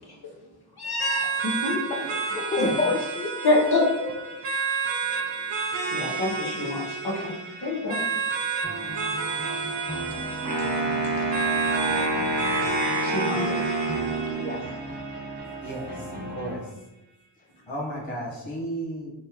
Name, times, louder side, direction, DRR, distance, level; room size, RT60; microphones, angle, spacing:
voice 1, 0.8-1.8 2.6-2.7 3.4-3.8 5.9-8.0 13.0-13.6, left 2 dB, 60° left, -1 dB, 1.0 m, -26 dB
sound 1, 1.0-16.0, right 5 dB, 75° right, 0.6 m, -31 dB
voice 2, 1.9-3.6 4.0-4.1 14.4-14.7, left 2 dB, 20° left, 2 dB, 0.4 m, -29 dB
sound 2, 8.6-16.6, right 2 dB, 25° right, 1.3 m, -36 dB
Wind instrument woodwind instrument, 10.5-14.7, right 2 dB, 40° right, 0.9 m, -27 dB
voice 3, 15.6-16.7 17.7-19.1, right 1 dB, 90° left, -3 dB, 1.0 m, -34 dB
3.5 x 3.1 x 2.8 m, 1.0 s
wide cardioid pair, 60°, 44 cm